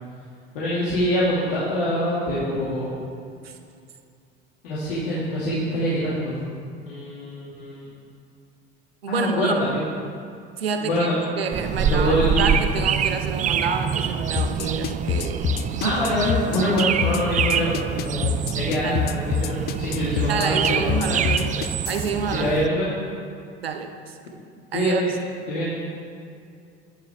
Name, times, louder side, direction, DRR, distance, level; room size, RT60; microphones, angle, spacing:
voice 1, 0.5-2.9 4.6-6.4 6.9-7.9 9.1-9.8 10.8-11.3 11.7-12.4 15.8-18.3 18.5-21.2 22.3-22.8 24.7-25.2 25.5-25.8, equal, 65° left, -7 dB, 2.5 m, -24 dB
voice 2, 9.0-9.5 10.6-11.1 11.4-16.0 18.8-19.1 20.3-22.5 23.6-24.2 24.7-25.0, right 6 dB, 75° right, 6 dB, 1.0 m, -28 dB
sound 1, 11.5-22.7, right 7 dB, 25° right, 0.5 m, -26 dB
sound 2, 14.4-22.1, left 10 dB, 35° left, 0.5 m, -26 dB
17.0 x 11.0 x 3.6 m, 2.4 s
figure-of-eight pair, 70°, 30 cm